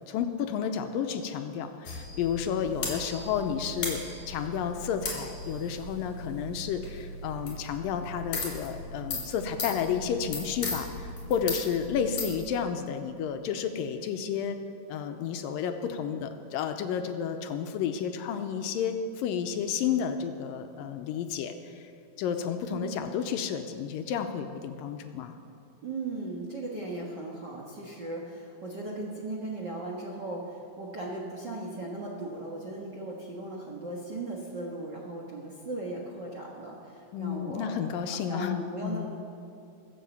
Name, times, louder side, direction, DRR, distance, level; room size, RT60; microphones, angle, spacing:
voice 1, 0.1-14.6 14.9-21.8 22.2-25.3 37.1-39.1, left 7 dB, 80° left, 7 dB, 2.3 m, -31 dB
sound 1, 1.9-12.3, left 2 dB, 50° left, 4.0 m, -37 dB
voice 2, 22.7-23.1 25.8-37.8 38.1-39.1, right 2 dB, 50° right, -2 dB, 1.3 m, -37 dB
23.0 x 7.9 x 7.1 m, 2.6 s
omnidirectional pair, 4.2 m